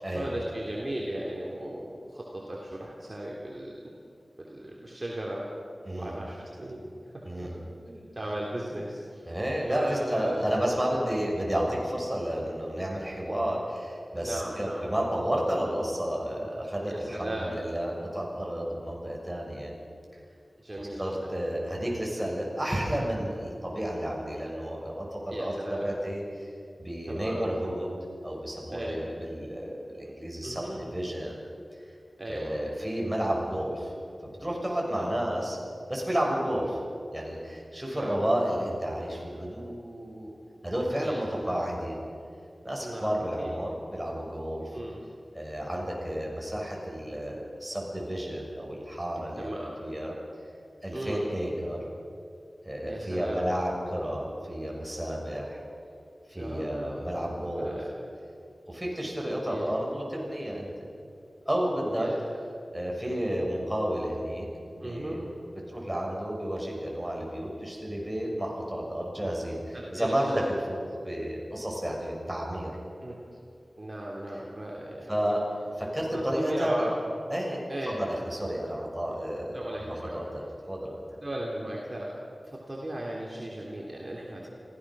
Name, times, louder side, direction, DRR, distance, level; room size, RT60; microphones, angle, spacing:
voice 1, 0.1-3.9 4.4-5.5 6.0-7.3 7.9-9.2 9.7-10.4 14.1-14.9 16.8-17.5 20.6-21.4 25.3-25.9 27.1-27.4 28.7-29.0 30.4-30.8 32.2-32.6 35.0-35.2 36.6-36.7 37.9-38.1 40.9-41.7 42.8-43.5 44.7-45.0 49.4-49.8 50.9-51.2 52.8-53.4 56.4-57.1 57.6-57.9 59.5-59.6 61.9-62.4 64.8-65.2 69.1-69.3 69.7-70.4 73.0-73.2 73.8-75.4 76.1-77.0 77.7-78.0 79.5-80.1 81.2-82.2 82.4-84.5, right 1 dB, 35° right, -3 dB, 3.5 m, -37 dB
voice 2, 9.2-19.7 20.7-26.5 26.8-27.9 28.2-31.4 32.3-33.9 34.2-35.6 35.9-36.8 37.1-40.3 40.6-42.0 42.6-44.8 45.3-49.5 49.8-50.1 50.8-51.8 52.6-55.6 56.3-57.8 58.7-60.9 61.5-62.1 62.7-64.5 64.8-65.2 65.7-72.7 75.1-76.9 77.3-80.4 80.7-81.0, equal, 10° right, -1 dB, 6.8 m, -31 dB
25.5 x 16.0 x 6.4 m, 2.4 s
cardioid pair, 40°, 0 cm